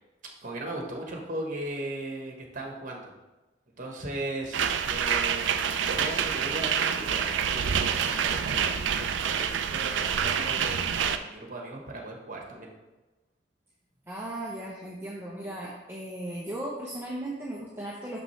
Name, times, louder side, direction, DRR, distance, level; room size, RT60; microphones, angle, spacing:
voice 1, 0.4-3.1 3.8-12.7, right 2 dB, 45° right, 1 dB, 1.2 m, -38 dB
sound 1, 4.5-11.2, right 7 dB, 85° right, 0.4 m, -27 dB
voice 2, 14.1-18.2, right 1 dB, 15° right, -6 dB, 0.8 m, -36 dB
6.3 x 6.0 x 3.2 m, 1.1 s
head